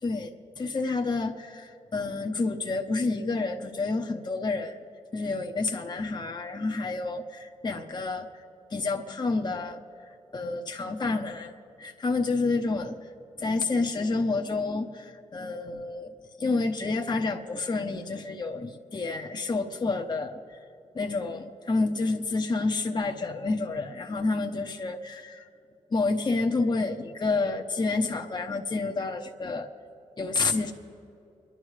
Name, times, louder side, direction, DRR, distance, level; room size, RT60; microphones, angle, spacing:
voice 1, 0.0-4.8 5.1-8.3 8.7-9.8 10.3-11.5 11.8-12.9 13.4-16.1 16.4-20.6 20.9-25.5 25.9-29.7 30.2-30.7, left 3 dB, 35° left, 3 dB, 0.9 m, -29 dB
29.5 x 11.0 x 3.3 m, 2.7 s
cardioid pair, 70°, 13 cm